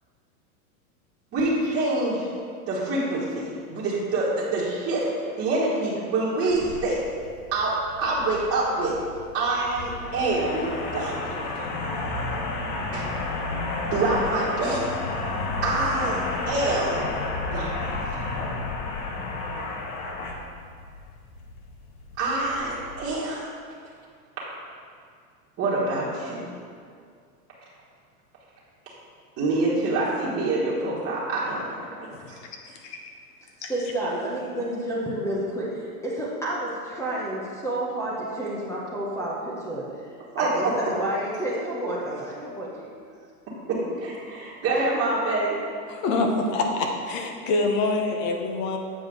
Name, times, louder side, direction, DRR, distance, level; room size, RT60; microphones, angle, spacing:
voice 1, 1.3-2.3 2.7-5.1 5.4-7.0 7.5-9.0 9.3-11.7 12.9-13.1 13.9-14.9 15.6-17.0 17.4-18.3 22.2-23.5 25.6-26.4 29.4-32.4 40.3-40.7 43.7-45.6, right 2 dB, 30° right, -8 dB, 1.6 m, -26 dB
sound 1, 6.5-23.1, left 3 dB, 65° left, 1.2 m, -32 dB
voice 2, 32.6-33.0 33.6-33.7 45.9-48.8, left 3 dB, 40° left, 3 dB, 1.0 m, -26 dB
voice 3, 33.6-39.8 40.4-42.9, right 1 dB, 5° left, -7 dB, 0.7 m, -30 dB
7.9 x 4.9 x 3.8 m, 2.2 s
hypercardioid pair, 125°, 46 cm